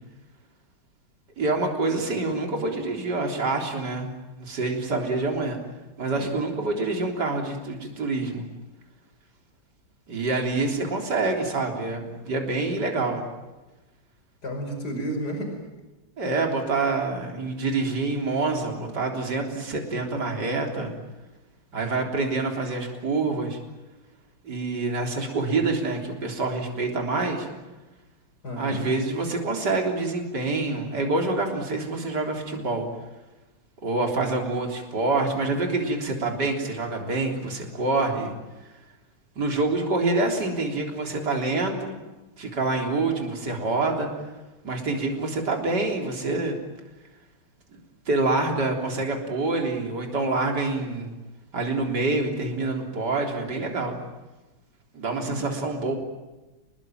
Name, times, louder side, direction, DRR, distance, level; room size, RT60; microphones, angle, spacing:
voice 1, 1.4-4.1 4.4-5.6 6.0-8.5 10.1-13.3 16.2-20.9 21.7-23.6 24.4-27.5 28.5-32.9 33.8-38.3 38.6-38.8 39.4-42.0 42.4-44.1 44.6-46.6 47.7-47.8 48.1-51.1 51.5-54.0 54.9-55.9, right 3 dB, 60° right, 2 dB, 4.3 m, -26 dB
voice 2, 6.0-6.3 14.4-15.6 28.4-28.8 55.2-55.4, equal, 55° left, 4 dB, 6.1 m, -32 dB
29.0 x 21.0 x 9.1 m, 1.1 s
omnidirectional pair, 2.0 m